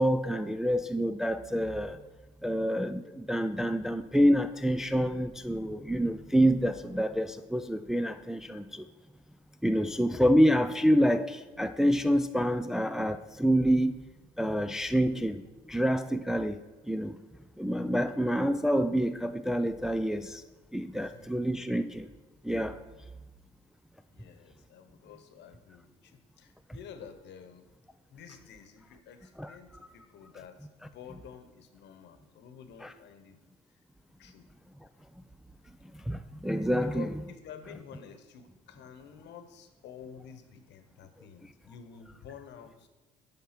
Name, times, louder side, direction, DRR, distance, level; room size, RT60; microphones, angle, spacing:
voice 1, 0.0-2.0 2.4-8.9 9.6-14.0 14.4-17.2 17.6-20.4 20.7-22.1 22.4-22.8 29.4-29.6 32.8-32.9 35.9-37.1, equal, ahead, 9 dB, 0.3 m, -27 dB
voice 2, 20.9-21.4 24.1-27.7 28.1-33.4 34.2-34.5 36.8-42.9, left 7 dB, 65° left, 8 dB, 1.0 m, -49 dB
10.0 x 3.6 x 5.9 m, 1.2 s
supercardioid pair, 75°, 19 cm